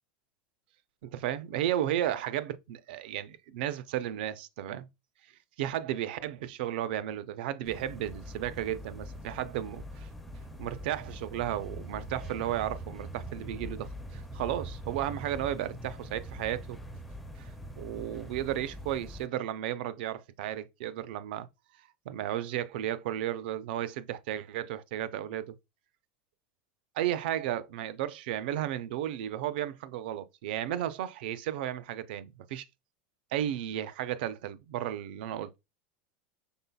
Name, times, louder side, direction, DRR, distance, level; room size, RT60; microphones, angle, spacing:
voice 1, 1.0-4.9 5.6-10.1 10.6-16.8 17.4-17.5 17.8-21.5 22.1-25.6 27.0-32.7 33.3-35.6, right 12 dB, 65° right, 0.4 m, -34 dB
sound 1, 7.6-19.3, equal, ahead, 0.4 m, -43 dB
5.4 x 3.9 x 2.2 m
supercardioid pair, 165°, 6 cm